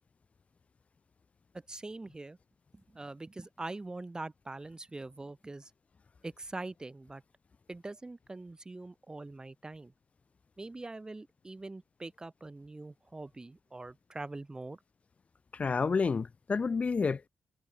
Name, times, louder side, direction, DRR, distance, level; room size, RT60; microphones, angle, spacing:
voice 1, 1.7-2.4 2.9-5.7 6.2-7.2 7.7-9.9 10.6-14.8, right 2 dB, 25° right, 1.7 m, -43 dB
voice 2, 15.5-17.3, left 5 dB, 45° left, 1.4 m, -29 dB
supercardioid pair, 50°, 3 cm